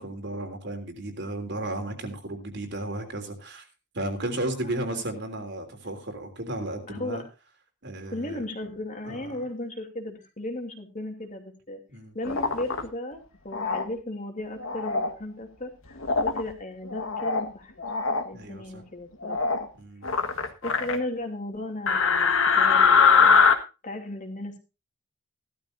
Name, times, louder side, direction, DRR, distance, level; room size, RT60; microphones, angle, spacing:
voice 1, 0.0-3.6 3.9-7.2 7.8-8.4 9.0-9.4 11.9-12.1 18.3-18.8 19.8-20.1, right 1 dB, 55° right, 4 dB, 3.3 m, -34 dB
voice 2, 6.9-7.3 8.1-11.8 12.1-17.7 18.2-19.5 20.6-23.5 23.8-24.6, left 1 dB, 40° left, 3 dB, 2.9 m, -35 dB
sound 1, 12.2-12.8 13.5-13.8 14.6-15.1 16.0-16.4 16.9-17.5 17.8-18.2 19.2-19.6 20.0-21.0 21.9-23.5, left 5 dB, 75° left, 1.6 m, -22 dB
17.0 x 12.5 x 2.6 m, 0.29 s
head